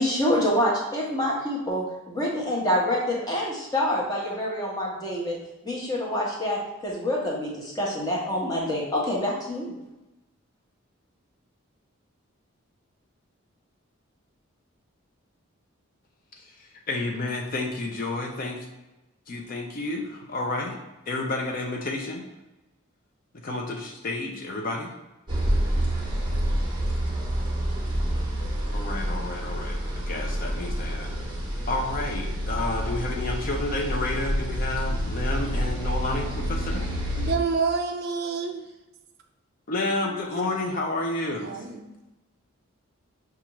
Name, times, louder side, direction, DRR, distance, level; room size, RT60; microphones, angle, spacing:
voice 1, 0.0-5.4 5.6-9.7, left 1 dB, 15° left, -3 dB, 0.8 m, -26 dB
voice 2, 16.4-18.7 19.3-20.8 21.1-22.2 23.4-24.9 28.7-31.1 31.7-36.9 39.7-41.5, left 2 dB, 40° left, 1 dB, 0.5 m, -30 dB
sound 1, 25.3-37.3, equal, 20° right, 0.7 m, -28 dB
voice 3, 37.2-38.7 41.4-41.9, right 5 dB, 50° right, 4 dB, 0.4 m, -28 dB
5.7 x 2.4 x 2.9 m, 1.0 s
head